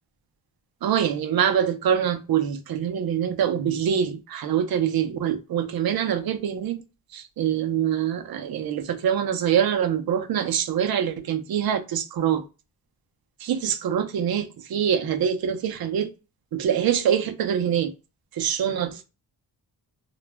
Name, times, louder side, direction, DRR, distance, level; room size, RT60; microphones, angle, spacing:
voice 1, 0.8-6.8 7.1-12.4 13.4-16.1 16.5-17.9 18.3-19.0, right 9 dB, 70° right, 0.5 m, -24 dB
2.3 x 2.0 x 3.3 m
wide cardioid pair, 130°, 38 cm